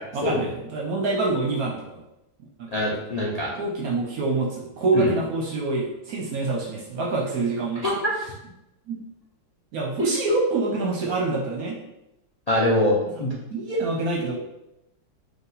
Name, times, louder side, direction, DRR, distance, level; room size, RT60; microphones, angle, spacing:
voice 1, 0.1-2.0 2.6-2.8 3.6-7.8 8.2-8.3 8.9-9.0 9.7-11.8 13.5-14.4, right 3 dB, 60° right, -1 dB, 1.0 m, -26 dB
voice 2, 2.7-3.5 4.9-5.1 12.5-13.3, left 1 dB, 85° left, -5 dB, 0.3 m, -23 dB
4.9 x 2.5 x 4.0 m, 0.87 s
omnidirectional pair, 2.2 m